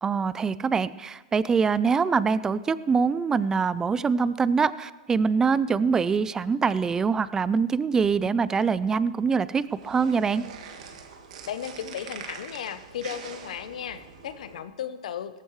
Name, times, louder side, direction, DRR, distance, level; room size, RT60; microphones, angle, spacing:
voice 1, 0.0-10.4, right 5 dB, 15° right, 17 dB, 0.4 m, -24 dB
sound 1, 9.6-14.6, right 6 dB, 65° right, 1.8 m, -43 dB
voice 2, 11.5-15.4, left 9 dB, 75° left, 12 dB, 0.8 m, -35 dB
17.0 x 14.5 x 3.3 m, 1.2 s
hypercardioid pair, 125°, 4 cm